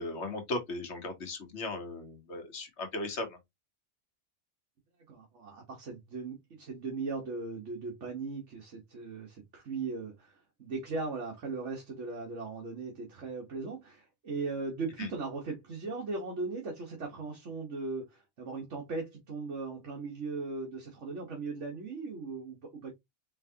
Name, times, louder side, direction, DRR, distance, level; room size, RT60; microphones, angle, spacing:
voice 1, 0.0-3.4 15.0-15.1, left 2 dB, 70° left, 1.5 m, -37 dB
voice 2, 5.1-22.9, right 3 dB, 80° right, 1.5 m, -38 dB
4.5 x 3.5 x 2.8 m
omnidirectional pair, 1.2 m